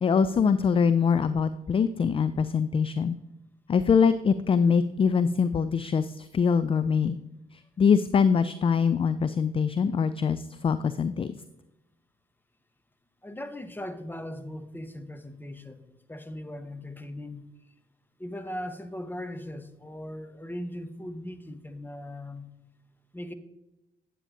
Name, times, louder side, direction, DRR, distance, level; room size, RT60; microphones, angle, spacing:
voice 1, 0.0-3.2 3.7-7.2 7.8-11.3, left 6 dB, 30° left, 13 dB, 0.4 m, -23 dB
voice 2, 13.2-17.5 18.2-22.5 23.1-23.3, left 1 dB, 10° left, 9 dB, 0.9 m, -39 dB
8.7 x 8.3 x 2.8 m, 0.97 s
hypercardioid pair, 50°, 20 cm